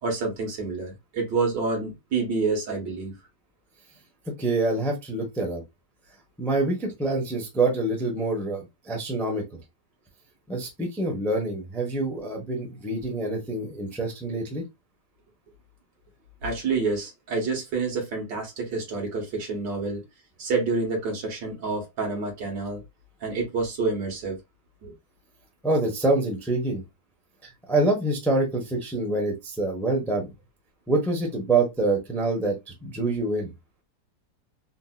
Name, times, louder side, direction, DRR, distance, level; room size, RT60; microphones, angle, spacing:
voice 1, 0.0-3.2 16.4-20.0 20.4-22.8 23.2-24.4 24.8-24.9, right 4 dB, 80° right, 1.9 m, -28 dB
voice 2, 4.4-5.6 6.4-9.4 10.5-14.6 25.6-26.8 27.7-30.3 30.9-33.5, right 2 dB, ahead, 0.4 m, -26 dB
3.8 x 2.7 x 2.2 m
omnidirectional pair, 1.9 m